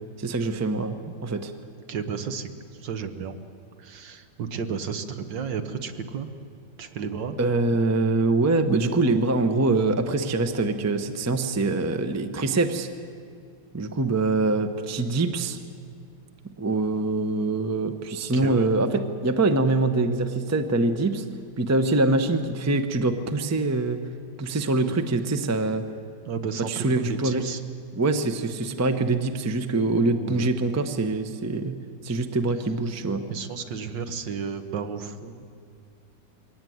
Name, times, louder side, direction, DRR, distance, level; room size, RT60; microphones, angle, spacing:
voice 1, 0.2-1.5 7.4-12.9 13.7-15.6 16.6-21.2 21.6-24.0 24.4-25.8 26.7-27.4 28.0-33.3, right 2 dB, 15° right, 8 dB, 0.5 m, -24 dB
voice 2, 1.9-2.5 2.8-3.4 3.8-6.3 6.8-7.4 18.3-18.7 26.3-27.6 30.1-30.5 33.3-35.5, right 6 dB, 75° right, 8 dB, 1.9 m, -33 dB
22.5 x 17.5 x 9.4 m, 2.2 s
omnidirectional pair, 2.0 m